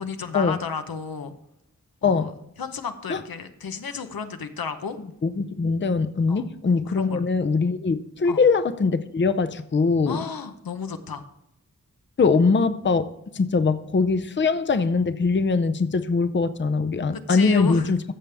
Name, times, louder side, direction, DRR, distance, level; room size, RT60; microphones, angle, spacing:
voice 1, 0.0-1.3 2.0-2.3 2.6-5.0 6.3-6.4 6.9-7.2 8.3-8.4 10.1-11.2 17.1-17.9, left 5 dB, 85° left, 8 dB, 0.9 m, -32 dB
voice 2, 2.0-2.4 3.1-3.2 5.2-10.2 12.2-18.0, left 4 dB, 35° left, 11 dB, 0.6 m, -22 dB
14.5 x 6.7 x 3.5 m, 0.81 s
wide cardioid pair, 90°, 35 cm